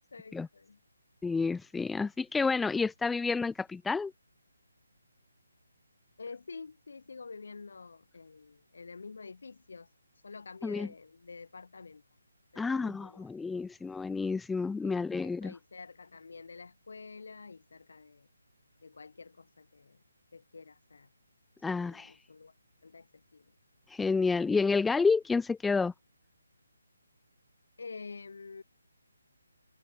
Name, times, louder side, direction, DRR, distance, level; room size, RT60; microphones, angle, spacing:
voice 1, 0.1-0.8 6.2-9.9 10.2-12.0 12.5-13.3 14.8-18.3 18.8-20.0 20.3-21.1 21.7-22.5 22.8-23.5 27.8-28.6, left 4 dB, 65° left, 4.8 m, -48 dB
voice 2, 1.2-4.1 10.6-10.9 12.6-15.5 21.6-22.1 23.9-25.9, left 4 dB, 5° left, 0.4 m, -29 dB
figure-of-eight pair, 145°, 0 cm